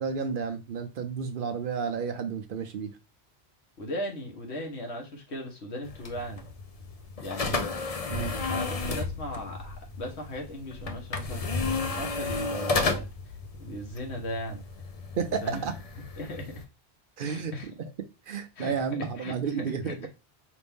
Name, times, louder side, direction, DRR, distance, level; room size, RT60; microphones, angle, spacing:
voice 1, 0.0-2.9 8.1-8.3 15.2-15.7 17.2-17.7 18.3-20.1, right 6 dB, 60° right, 0.7 m, -31 dB
voice 2, 3.8-6.4 7.2-7.6 8.5-13.1 13.6-14.6 15.4-15.6 16.2-16.6 17.2-17.7 18.6-18.7 19.2-19.5 19.8-20.1, equal, 80° left, 1.5 m, -37 dB
sound 1, 5.8-16.6, left 3 dB, 40° left, 0.6 m, -33 dB
5.1 x 2.6 x 3.5 m
omnidirectional pair, 1.1 m